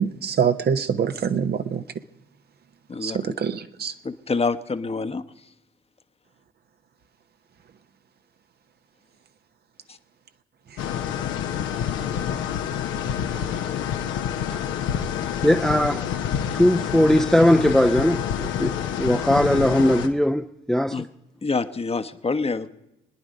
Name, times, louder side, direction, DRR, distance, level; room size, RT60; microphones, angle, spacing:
voice 1, 0.0-1.8 3.0-3.9, right 7 dB, 55° right, 0.9 m, -24 dB
voice 2, 4.0-5.2 20.9-21.0 21.4-22.7, left 4 dB, 30° left, 1.0 m, -26 dB
sound 1, 10.8-20.1, left 9 dB, 75° left, 0.9 m, -27 dB
voice 3, 15.4-16.0 16.5-21.0, equal, ahead, 0.6 m, -20 dB
25.0 x 10.0 x 5.3 m
hypercardioid pair, 45°, 20 cm